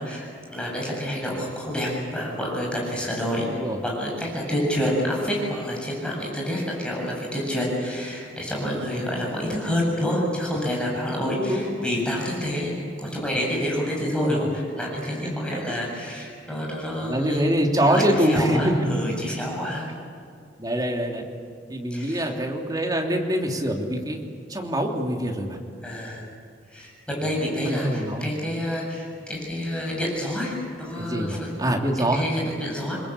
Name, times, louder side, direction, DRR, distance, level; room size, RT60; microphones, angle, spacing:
voice 1, 0.0-3.5 3.8-17.4 17.8-19.9 21.9-22.2 25.8-26.2 26.7-31.5 32.1-33.0, equal, 5° left, -3 dB, 7.9 m, -28 dB
voice 2, 11.3-12.0 14.0-14.5 15.2-15.8 16.9-19.0 20.6-21.2 21.7-24.2 24.5-25.6 27.1-27.2 27.6-28.3 31.0-32.2, right 1 dB, 20° right, 1 dB, 3.0 m, -25 dB
28.5 x 21.5 x 8.5 m, 2.2 s
head